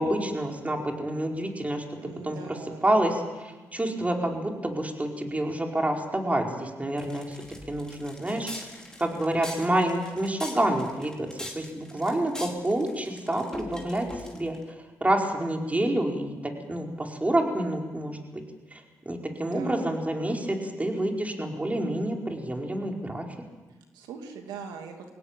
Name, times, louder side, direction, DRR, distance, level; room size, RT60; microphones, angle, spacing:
voice 1, 0.0-1.8 2.2-7.4 7.7-8.5 9.0-11.3 11.5-14.6 15.0-16.3 16.7-18.2 18.7-23.3, right 1 dB, 20° right, 1 dB, 4.9 m, -28 dB
voice 2, 2.0-2.9 19.5-19.9 23.9-24.9, right 6 dB, 90° right, 4 dB, 2.4 m, -41 dB
sound 1, 7.0-14.6, left 1 dB, 10° left, 4.2 m, -41 dB
22.0 x 17.5 x 9.0 m, 1.2 s
supercardioid pair, 55°, 7 cm